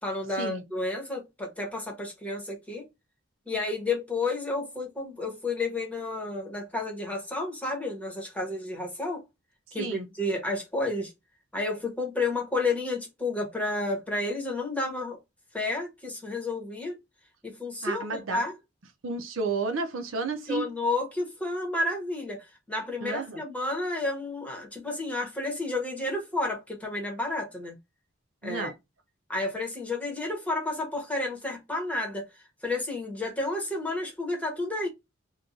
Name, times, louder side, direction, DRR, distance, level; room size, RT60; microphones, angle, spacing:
voice 1, 0.0-2.9 3.5-9.2 9.7-11.1 11.5-15.2 15.5-17.0 17.4-18.5 20.5-27.7 28.4-28.7 29.3-34.9, left 2 dB, 5° left, 1.1 m, -31 dB
voice 2, 17.8-18.4 19.0-20.7 23.0-23.4 28.4-28.7, right 3 dB, 80° right, 0.7 m, -31 dB
2.7 x 2.3 x 3.7 m
head